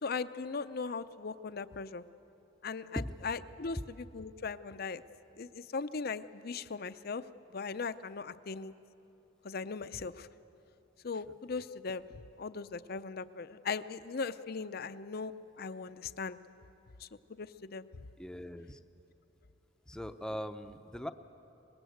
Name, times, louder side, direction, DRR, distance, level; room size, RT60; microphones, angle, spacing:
voice 1, 0.0-2.0 2.6-5.0 5.4-7.2 7.5-8.7 9.4-10.3 11.0-12.1 12.4-15.3 15.6-16.4 17.0-17.9, left 4 dB, 50° left, 13 dB, 0.6 m, -39 dB
voice 2, 18.2-18.8 19.9-21.1, equal, 5° left, 8 dB, 0.7 m, -41 dB
24.5 x 21.0 x 7.9 m, 3.0 s
head